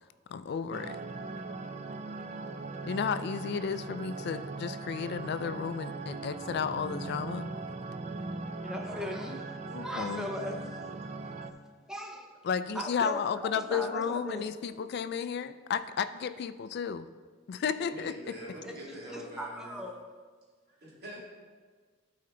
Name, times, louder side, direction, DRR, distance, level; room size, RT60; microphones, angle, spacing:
voice 1, 0.3-1.0 2.8-7.5 9.7-10.3 12.4-17.1 17.5-18.1, left 6 dB, 55° left, 13 dB, 0.3 m, -33 dB
sound 1, 0.7-11.5, right 3 dB, 35° right, 0.3 m, -39 dB
voice 2, 8.6-10.8 11.9-12.3 12.7-14.4 14.8-14.9 18.6-20.0, equal, 5° right, 1 dB, 0.7 m, -39 dB
voice 3, 17.8-19.8 20.7-21.2, right 1 dB, 55° right, -5 dB, 2.5 m, -45 dB
12.0 x 4.3 x 3.8 m, 1.5 s
head